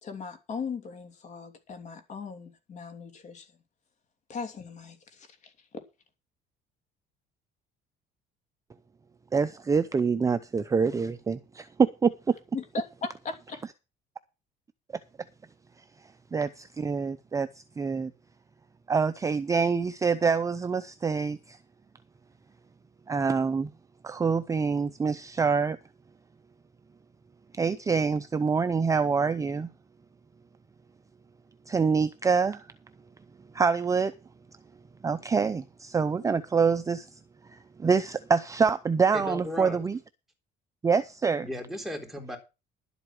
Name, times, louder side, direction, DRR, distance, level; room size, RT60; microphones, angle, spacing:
voice 1, 0.0-3.5 4.3-5.5 12.5-13.6, left 5 dB, 40° left, 3.0 m, -38 dB
voice 2, 9.3-12.4 16.3-17.5 17.8-18.1 18.9-21.6 23.1-23.7 24.0-25.8 27.6-29.7 31.7-32.6 33.5-34.1 35.0-37.1 37.8-40.0 40.8-41.5, right 5 dB, 15° right, 0.6 m, -26 dB
voice 3, 39.1-39.8 41.4-42.4, left 1 dB, ahead, 3.8 m, -36 dB
12.0 x 8.1 x 6.0 m
cardioid pair, 140°, 18 cm